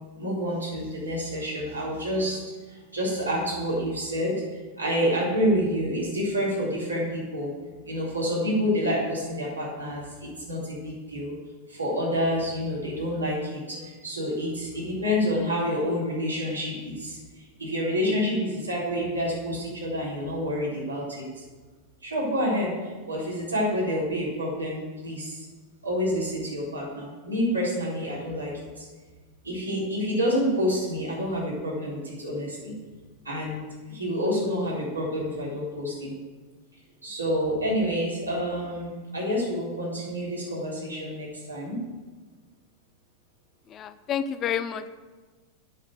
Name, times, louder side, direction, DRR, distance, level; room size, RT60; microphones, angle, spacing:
voice 1, 0.2-7.5 7.8-11.4 11.7-21.4 22.0-25.5 25.8-28.9 29.4-32.7 33.2-36.1 37.0-41.8, equal, 80° right, -6 dB, 3.8 m, -28 dB
voice 2, 43.7-44.9, left 8 dB, 30° left, 12 dB, 0.6 m, -29 dB
8.3 x 7.0 x 8.0 m, 1.4 s
figure-of-eight pair, 90°, 0 cm